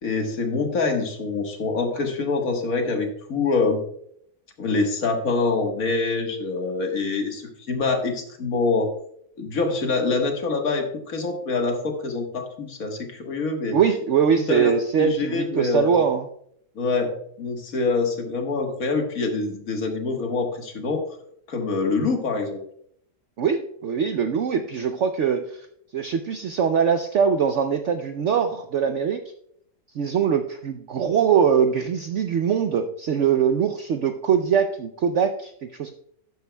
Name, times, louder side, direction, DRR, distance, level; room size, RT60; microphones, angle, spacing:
voice 1, 0.0-3.8 4.6-8.9 9.4-13.8 14.3-16.0 16.7-21.1 21.5-22.6, left 3 dB, 55° left, 3 dB, 1.7 m, -25 dB
voice 2, 13.7-16.3 23.4-25.6 25.9-29.2 29.9-35.9, right 7 dB, 65° right, 7 dB, 0.7 m, -22 dB
12.0 x 9.5 x 2.2 m, 0.69 s
omnidirectional pair, 1.8 m